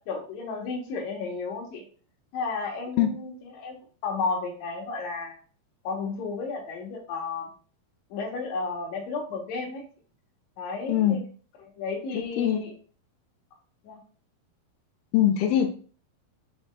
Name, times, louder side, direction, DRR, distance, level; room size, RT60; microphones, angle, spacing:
voice 1, 0.1-1.8 2.3-3.8 4.0-5.4 5.8-7.5 8.1-9.8 10.6-11.2 11.6-12.7 13.8-14.0, left 4 dB, 65° left, 0 dB, 1.8 m, -33 dB
voice 2, 10.9-11.2 12.4-12.6 15.1-15.7, left 11 dB, 85° left, 6 dB, 2.5 m, -22 dB
6.3 x 3.5 x 2.2 m, 0.41 s
omnidirectional pair, 4.4 m